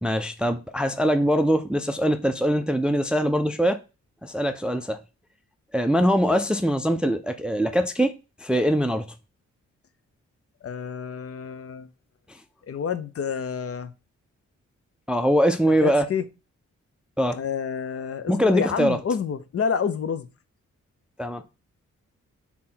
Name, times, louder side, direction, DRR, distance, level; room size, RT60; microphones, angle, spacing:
voice 1, 0.0-3.8 4.2-5.0 5.7-8.1 8.4-9.1 15.1-16.1 17.2-17.4 18.3-19.0 21.2-21.4, equal, 5° right, 0.4 m, -22 dB
voice 2, 10.6-11.9 12.7-13.9 15.8-16.2 17.3-20.3, left 6 dB, 45° left, 0.6 m, -28 dB
3.5 x 2.8 x 4.2 m
supercardioid pair, 45°, 32 cm